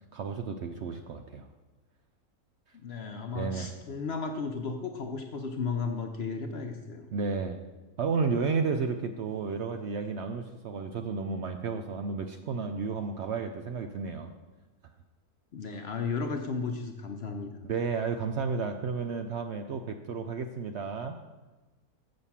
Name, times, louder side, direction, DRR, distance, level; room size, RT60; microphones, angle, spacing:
voice 1, 0.1-1.5 3.3-3.7 7.1-7.6 8.0-14.3 17.6-21.2, right 5 dB, 65° right, 6 dB, 0.7 m, -32 dB
voice 2, 2.8-7.1 15.5-17.6, left 4 dB, 55° left, 5 dB, 0.7 m, -34 dB
6.9 x 6.4 x 7.2 m, 1.2 s
omnidirectional pair, 1.6 m